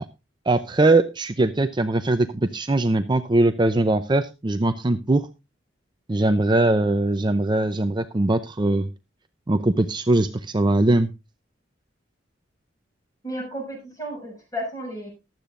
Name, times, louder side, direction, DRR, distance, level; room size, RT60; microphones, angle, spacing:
voice 1, 0.5-5.3 6.1-8.9 9.5-11.1, right 2 dB, 25° right, 10 dB, 0.6 m, -21 dB
voice 2, 13.2-15.1, equal, 20° left, 1 dB, 6.9 m, -33 dB
15.0 x 12.0 x 2.5 m, 0.26 s
head